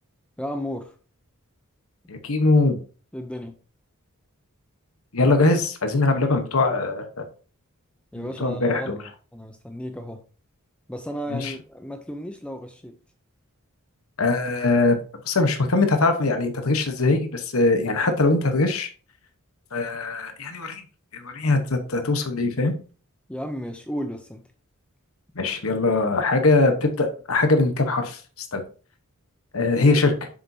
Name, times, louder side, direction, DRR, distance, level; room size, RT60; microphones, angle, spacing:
voice 1, 0.4-0.9 3.1-3.6 8.1-10.2 10.9-12.9 23.3-24.4, equal, 5° left, 0.6 m, -34 dB
voice 2, 2.1-2.8 5.1-7.2 8.2-8.9 11.3-11.5 14.2-15.0 15.2-18.9 19.7-20.8 21.1-22.7 25.4-28.6 29.5-30.3, left 3 dB, 75° left, 1.2 m, -21 dB
7.3 x 7.2 x 2.8 m
head